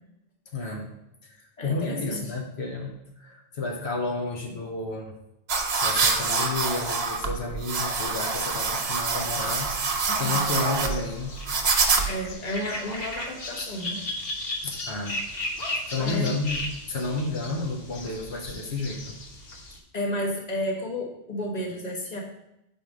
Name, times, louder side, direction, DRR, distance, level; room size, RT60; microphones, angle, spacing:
voice 1, 0.5-0.9 1.2-5.1 5.8-9.8 10.2-11.4 14.6-15.2 15.9-19.1, left 3 dB, 80° left, 1 dB, 1.2 m, -31 dB
voice 2, 1.6-2.3 10.1-10.4 12.0-14.0 16.0-16.3 19.9-22.2, equal, 40° left, -1 dB, 1.4 m, -32 dB
sound 1, 5.5-12.3, right 4 dB, 70° right, 1.1 m, -26 dB
sound 2, 10.3-19.8, left 1 dB, 65° left, 1.2 m, -36 dB
5.2 x 4.5 x 6.2 m, 0.87 s
omnidirectional pair, 1.1 m